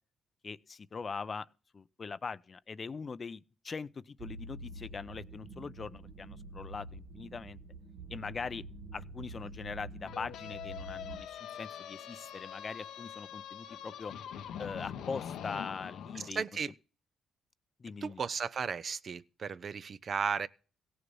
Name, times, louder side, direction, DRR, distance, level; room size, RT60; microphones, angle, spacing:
voice 1, 0.4-1.5 1.7-7.6 8.1-8.6 8.9-14.1 14.6-16.4 17.8-18.2, left 5 dB, 35° left, 0.6 m, -41 dB
sound 1, 4.2-11.3, right 2 dB, 65° right, 1.5 m, -47 dB
sound 2, 10.0-16.3, left 9 dB, 80° left, 0.9 m, -43 dB
voice 2, 16.3-16.7 18.0-20.5, right 6 dB, 45° right, 0.6 m, -35 dB
16.5 x 6.8 x 5.4 m
cardioid pair, 90°, 0 cm